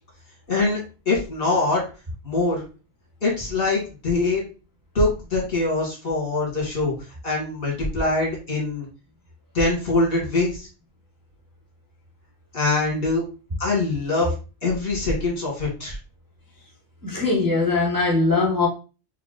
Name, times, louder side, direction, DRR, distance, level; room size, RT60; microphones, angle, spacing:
voice 1, 0.5-0.8 1.1-1.8 2.2-2.6 3.2-4.4 5.0-6.9 7.2-8.9 9.5-10.7 12.5-13.2 13.6-14.3 14.6-16.0, left 3 dB, 55° left, 1.9 m, -23 dB
voice 2, 17.0-18.7, left 3 dB, 20° right, 0.6 m, -21 dB
4.5 x 2.0 x 3.7 m
omnidirectional pair, 1.2 m